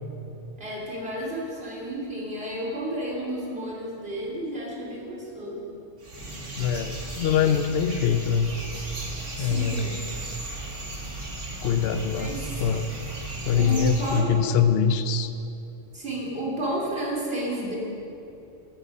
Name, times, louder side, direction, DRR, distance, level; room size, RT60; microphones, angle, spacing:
voice 1, 0.6-5.6 9.4-10.0 12.2-12.4 13.5-14.5 15.9-17.8, equal, 55° right, -4 dB, 3.4 m, -31 dB
sound 1, 6.0-14.2, right 2 dB, 80° right, 2.2 m, -36 dB
voice 2, 6.6-8.6 9.4-10.0 11.6-12.9 13.4-15.3, left 7 dB, 60° left, 9 dB, 0.8 m, -24 dB
21.0 x 8.3 x 5.4 m, 2.8 s
omnidirectional pair, 1.2 m